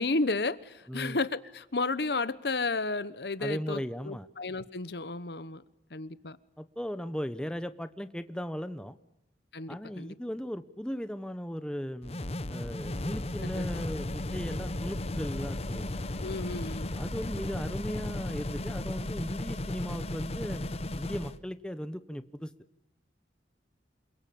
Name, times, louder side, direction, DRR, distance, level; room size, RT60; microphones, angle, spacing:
voice 1, 0.0-5.6 5.9-6.4 9.5-10.2 13.4-13.7 16.2-17.0, left 3 dB, 65° left, 1.1 m, -32 dB
voice 2, 3.4-4.3 6.6-9.0 9.7-16.1 17.0-22.5, equal, 5° left, 1.0 m, -37 dB
sound 1, 12.0-21.4, left 1 dB, 35° left, 1.1 m, -35 dB
28.0 x 22.5 x 8.7 m
head